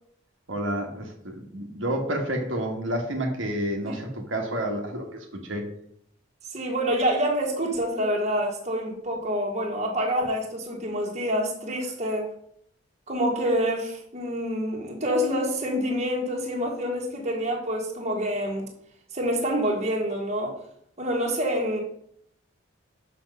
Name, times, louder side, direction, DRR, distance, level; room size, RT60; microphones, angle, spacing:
voice 1, 0.5-5.6, right 1 dB, 80° right, 1 dB, 1.5 m, -30 dB
voice 2, 6.5-12.3 13.1-18.7 19.1-20.5 21.0-21.8, equal, 35° right, 0 dB, 1.7 m, -27 dB
6.4 x 6.2 x 5.4 m, 0.69 s
head